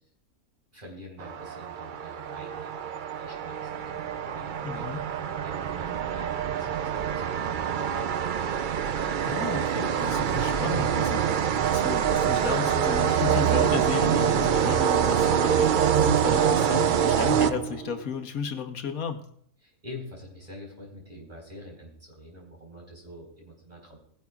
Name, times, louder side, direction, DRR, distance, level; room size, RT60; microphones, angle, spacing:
voice 1, 0.7-2.9 3.2-8.3 19.6-24.0, left 1 dB, 30° right, -1 dB, 4.2 m, -46 dB
sound 1, 1.2-18.0, right 8 dB, 80° right, 0.4 m, -25 dB
voice 2, 4.6-5.0 9.2-19.2, left 6 dB, 85° left, 5 dB, 1.5 m, -34 dB
21.0 x 11.0 x 2.4 m, 0.64 s
omnidirectional pair, 1.5 m